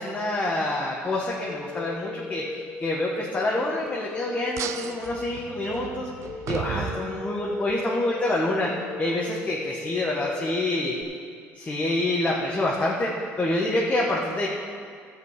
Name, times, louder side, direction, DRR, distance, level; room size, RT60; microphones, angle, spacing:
voice 1, 0.0-6.1 6.5-8.7 9.0-11.0 11.6-13.1 13.4-14.5, left 2 dB, 25° left, -4 dB, 1.6 m, -27 dB
sound 1, 1.5-11.0, left 3 dB, 40° left, 0.9 m, -38 dB
sound 2, 4.6-7.8, right 10 dB, 60° right, 0.5 m, -35 dB
12.5 x 5.4 x 8.3 m, 2.2 s
supercardioid pair, 85°, 6 cm